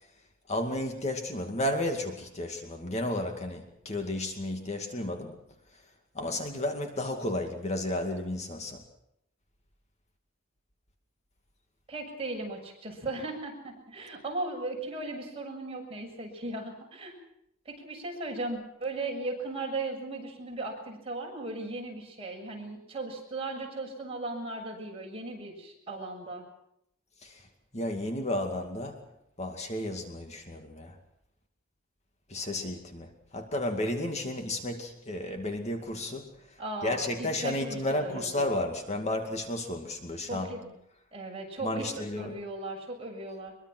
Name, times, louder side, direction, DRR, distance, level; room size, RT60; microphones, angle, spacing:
voice 1, 0.5-5.4 6.1-8.8 27.2-27.4 27.7-29.0 29.4-31.0 32.3-36.3 36.8-40.5 41.6-42.4, left 1 dB, 35° left, 4 dB, 2.3 m, -32 dB
voice 2, 11.9-17.2 17.7-26.4 36.6-38.3 40.3-40.7 41.1-43.5, right 2 dB, 30° right, 0 dB, 7.0 m, -37 dB
24.0 x 23.0 x 6.2 m, 0.78 s
head